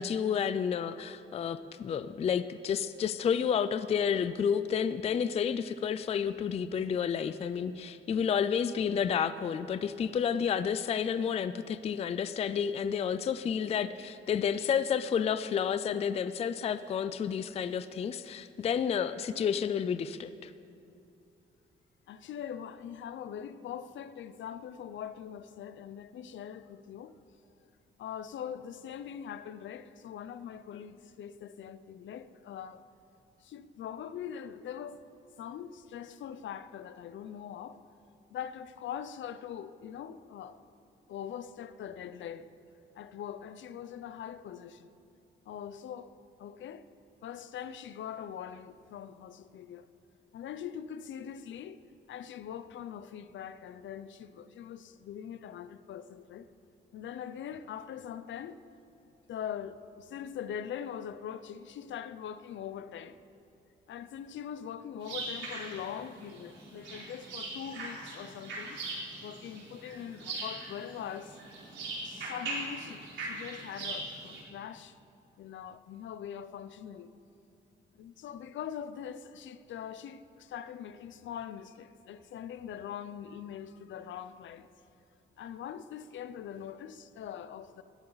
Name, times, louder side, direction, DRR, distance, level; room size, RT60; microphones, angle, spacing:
voice 1, 0.0-20.5, left 7 dB, 30° left, 0.3 m, -30 dB
voice 2, 22.1-27.1 28.0-32.8 33.4-35.0 35.4-37.8 38.3-40.6 41.1-42.5 42.9-44.9 45.5-46.8 47.2-49.9 50.3-51.8 52.1-56.5 56.9-58.6 59.3-63.2 63.9-68.8 69.2-71.4 72.0-75.0 75.4-77.1 77.9-84.7 85.4-87.8, left 9 dB, 75° left, 0.6 m, -42 dB
sound 1, 65.0-74.4, right 2 dB, 70° right, 4.2 m, -40 dB
19.5 x 14.0 x 4.0 m
wide cardioid pair, 170°, 20 cm